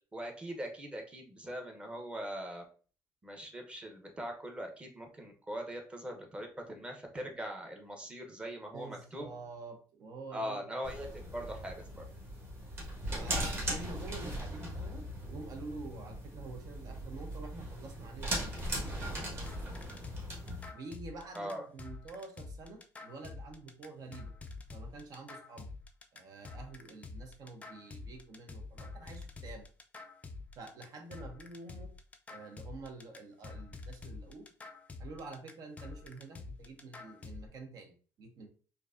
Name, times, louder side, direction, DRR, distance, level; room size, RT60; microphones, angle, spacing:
voice 1, 0.1-2.6 3.2-9.3 10.3-12.0 21.3-21.7, equal, 15° right, 3 dB, 0.8 m, -41 dB
voice 2, 8.7-10.6 13.1-18.7 20.7-24.3 24.7-25.7 26.1-29.7 30.6-31.9 32.3-34.5 35.0-38.5, right 3 dB, 55° right, 5 dB, 0.8 m, -48 dB
sound 1, 10.8-20.7, right 1 dB, 35° right, 1.5 m, -39 dB
sound 2, 18.6-37.5, left 3 dB, 20° left, 0.3 m, -47 dB
4.5 x 2.6 x 2.6 m, 0.39 s
cardioid pair, 135°, 7 cm